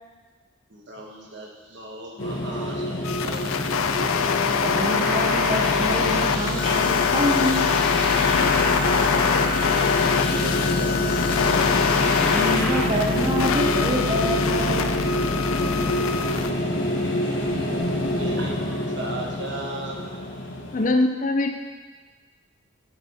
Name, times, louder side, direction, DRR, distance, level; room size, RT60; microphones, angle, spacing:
voice 1, 0.7-3.7 8.6-11.6 17.0-19.9, right 2 dB, 55° right, -1 dB, 1.3 m, -37 dB
sound 1, 2.2-20.9, left 1 dB, 65° left, 1.0 m, -27 dB
sound 2, 3.0-16.5, left 6 dB, 90° left, 0.4 m, -23 dB
voice 2, 4.6-7.7 12.2-15.0, equal, 25° right, 0 dB, 0.5 m, -27 dB
sound 3, 4.7-12.8, equal, 5° left, 1.1 m, -32 dB
voice 3, 20.7-21.5, left 2 dB, 40° left, 5 dB, 0.5 m, -21 dB
8.8 x 7.2 x 3.5 m, 1.4 s
head